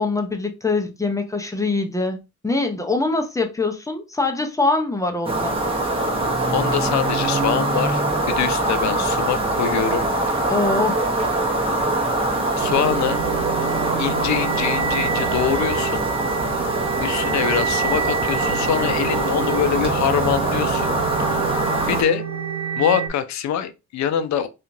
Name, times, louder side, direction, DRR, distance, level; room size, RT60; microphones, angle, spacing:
voice 1, 0.0-5.6 10.5-11.0, left 3 dB, 10° left, 0.6 m, -23 dB
sound 1, 5.2-22.0, right 2 dB, 20° right, 0.9 m, -23 dB
voice 2, 6.5-10.3 12.6-13.2 14.0-16.1 17.0-20.9 21.8-22.2 22.8-24.5, left 9 dB, 65° left, 0.5 m, -24 dB
sound 2, 12.6-23.1, right 7 dB, 65° right, 1.0 m, -28 dB
2.8 x 2.5 x 2.6 m
cardioid pair, 90°, 30 cm